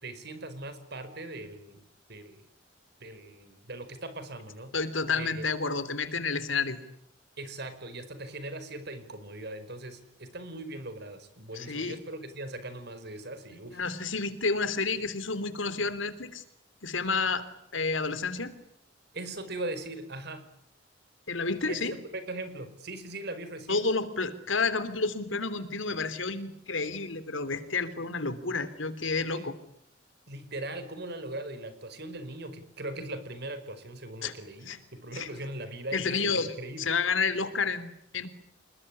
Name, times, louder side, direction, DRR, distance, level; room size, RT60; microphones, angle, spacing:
voice 1, 0.0-1.8 2.1-2.5 3.0-4.7 5.1-5.5 7.4-13.8 19.1-20.5 21.7-23.8 29.2-29.5 30.3-36.9, right 2 dB, 60° right, 11 dB, 5.1 m, -40 dB
voice 2, 4.7-6.8 11.5-12.0 13.7-16.4 16.8-17.4 17.7-18.5 21.3-21.9 23.7-29.6 34.2-34.3 34.7-34.8 35.1-35.3 35.9-38.3, left 4 dB, 90° left, 13 dB, 3.3 m, -30 dB
28.0 x 21.5 x 10.0 m, 0.74 s
head